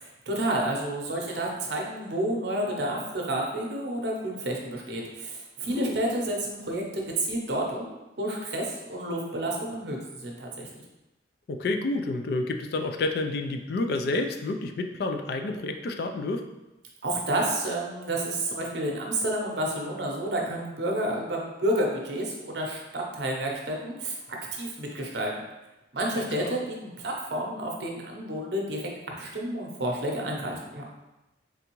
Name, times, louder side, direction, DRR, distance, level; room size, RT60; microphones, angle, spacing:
voice 1, 0.0-10.7 17.0-24.2 24.5-25.3 25.9-28.8 29.2-30.8, right 1 dB, 60° right, 0 dB, 0.7 m, -30 dB
voice 2, 11.5-16.4 26.4-26.6, left 2 dB, 55° left, 5 dB, 0.3 m, -29 dB
3.8 x 3.4 x 3.0 m, 1.0 s
head